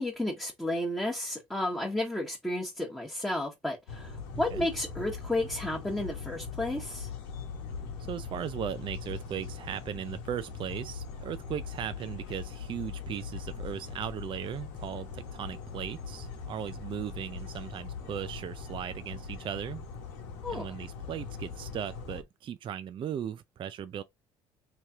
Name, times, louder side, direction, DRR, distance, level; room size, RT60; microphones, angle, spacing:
voice 1, 0.0-7.1 20.4-20.7, left 1 dB, 5° left, 1.2 m, -32 dB
sound 1, 3.9-22.2, left 5 dB, 85° left, 1.0 m, -41 dB
voice 2, 8.0-19.8 20.5-24.0, right 9 dB, 45° right, 0.4 m, -37 dB
3.1 x 2.9 x 3.6 m
supercardioid pair, 70°, 12 cm